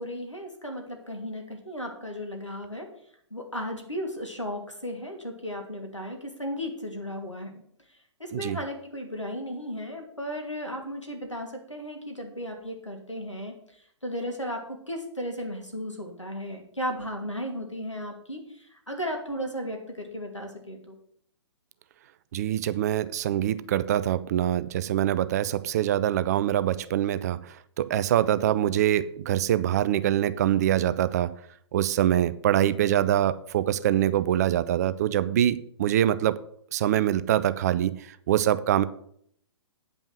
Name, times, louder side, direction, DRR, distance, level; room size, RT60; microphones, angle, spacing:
voice 1, 0.0-2.9 3.3-7.6 8.2-13.5 14.0-20.9, equal, 90° left, 2 dB, 2.6 m, -35 dB
voice 2, 22.3-31.3 31.7-36.4 36.7-38.8, right 11 dB, 35° right, 15 dB, 0.5 m, -24 dB
9.1 x 5.4 x 7.7 m, 0.65 s
figure-of-eight pair, 120°, 15 cm